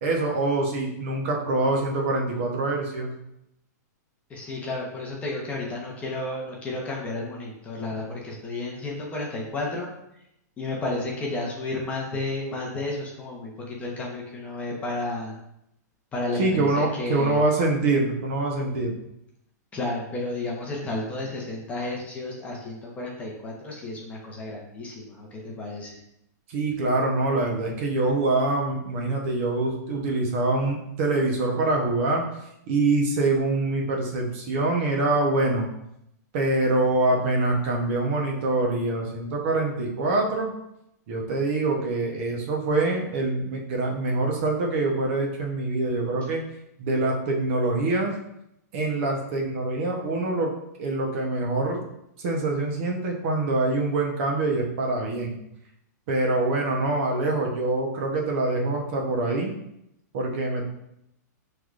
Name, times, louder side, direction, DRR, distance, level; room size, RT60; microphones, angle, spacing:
voice 1, 0.0-3.1 16.3-19.0 26.5-32.2 32.7-35.7 36.3-40.5 41.1-46.4 46.8-48.1 48.7-50.5 50.8-51.8 52.2-55.4 56.1-59.5 60.1-60.6, right 2 dB, 45° right, 0 dB, 0.9 m, -25 dB
voice 2, 4.3-9.9 10.6-15.4 16.1-17.4 19.7-26.0, left 2 dB, 15° left, -3 dB, 0.8 m, -32 dB
5.8 x 3.3 x 2.5 m, 0.80 s
hypercardioid pair, 160°, 10 cm